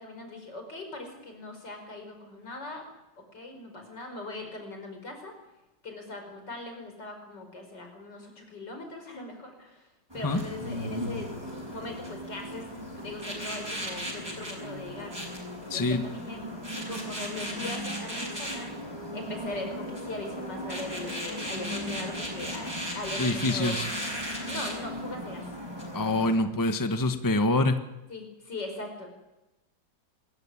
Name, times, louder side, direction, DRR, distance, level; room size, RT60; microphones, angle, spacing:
voice 1, 0.0-2.9 3.3-5.4 5.8-9.9 10.1-11.3 11.7-12.7 13.0-15.3 15.7-16.5 16.7-18.7 19.1-23.7 24.4-25.4 28.1-29.1, left 2 dB, 75° left, 4 dB, 5.8 m, -40 dB
sound 1, 10.1-26.4, equal, 15° right, 7.3 m, -36 dB
voice 2, 15.7-16.0 23.2-23.9 25.9-27.8, left 2 dB, 10° left, 8 dB, 1.2 m, -25 dB
25.0 x 15.0 x 10.0 m, 0.98 s
omnidirectional pair, 1.9 m